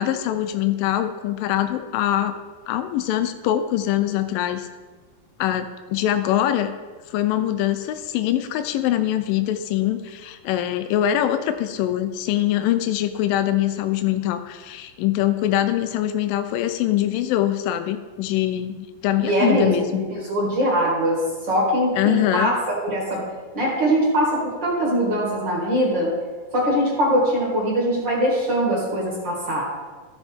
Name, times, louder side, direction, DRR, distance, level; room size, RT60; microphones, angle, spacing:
voice 1, 0.0-2.3 2.7-4.7 5.4-6.7 7.1-20.0 22.0-22.5, left 12 dB, 85° left, 9 dB, 2.0 m, -23 dB
voice 2, 19.2-22.5 22.8-23.2 23.5-26.1 26.5-29.6, equal, 40° right, -4 dB, 1.9 m, -22 dB
14.5 x 7.2 x 3.4 m, 1.4 s
omnidirectional pair, 4.5 m